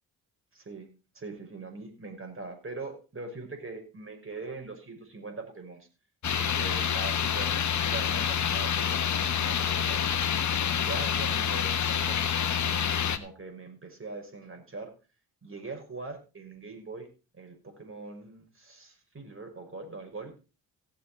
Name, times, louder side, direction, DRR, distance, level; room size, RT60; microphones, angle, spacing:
voice 1, 0.5-0.9 1.1-5.9 6.4-10.1 10.7-14.9 15.4-17.1 17.4-20.3, right 3 dB, 35° right, 4 dB, 5.7 m, -42 dB
sound 1, 6.2-13.2, left 8 dB, 50° left, 1.3 m, -27 dB
17.5 x 7.4 x 4.2 m, 0.32 s
supercardioid pair, 50°, 37 cm